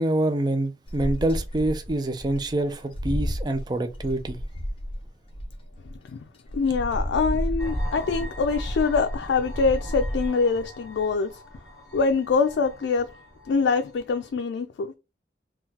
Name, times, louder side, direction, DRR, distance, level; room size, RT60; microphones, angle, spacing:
voice 1, 0.0-4.4, right 1 dB, 25° right, 0.4 m, -26 dB
sound 1, 0.9-6.0 6.5-10.3, equal, 30° left, 0.5 m, -31 dB
voice 2, 6.5-11.4 11.9-13.1 13.5-14.9, left 4 dB, 90° left, 0.3 m, -24 dB
sound 2, 7.6-14.3, equal, 10° left, 1.6 m, -40 dB
3.7 x 2.3 x 2.8 m
head